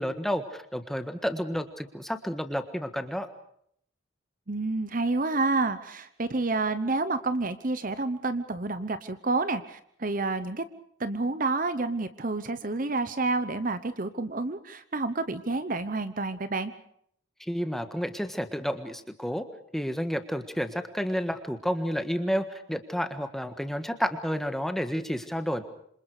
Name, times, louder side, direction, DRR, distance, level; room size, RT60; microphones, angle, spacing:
voice 1, 0.0-3.3 17.4-19.5 19.7-25.6, equal, ahead, 8 dB, 1.6 m, -30 dB
voice 2, 4.5-10.6 11.0-16.7, right 3 dB, 40° right, 12 dB, 1.0 m, -29 dB
27.0 x 26.5 x 5.0 m, 0.67 s
head